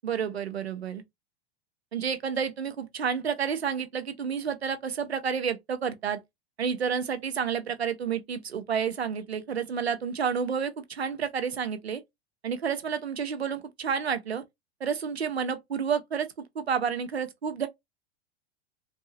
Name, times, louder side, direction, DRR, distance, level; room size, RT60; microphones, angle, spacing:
voice 1, 0.0-1.0 1.9-6.2 6.6-12.0 12.4-14.4 14.8-16.3 16.5-17.7, right 7 dB, 80° right, 0.8 m, -30 dB
3.9 x 2.7 x 2.8 m
figure-of-eight pair, 95°, 31 cm